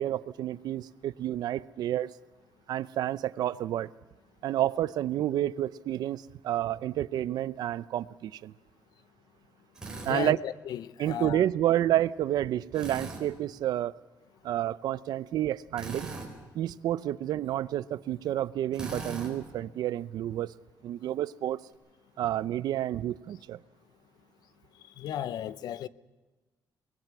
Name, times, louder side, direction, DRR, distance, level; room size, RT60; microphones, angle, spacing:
voice 1, 0.0-2.1 2.7-3.9 4.4-8.5 10.1-10.4 11.0-13.9 14.4-16.1 16.5-20.6 20.8-21.6 22.2-23.6, right 12 dB, 75° right, 0.6 m, -30 dB
Drill, 9.8-10.1 12.7-13.2 15.7-16.3 18.7-19.3, right 3 dB, 10° right, 4.4 m, -39 dB
voice 2, 10.0-11.4 25.0-25.9, left 11 dB, 75° left, 0.7 m, -35 dB
24.5 x 20.0 x 6.0 m
cardioid pair, 145°, 7 cm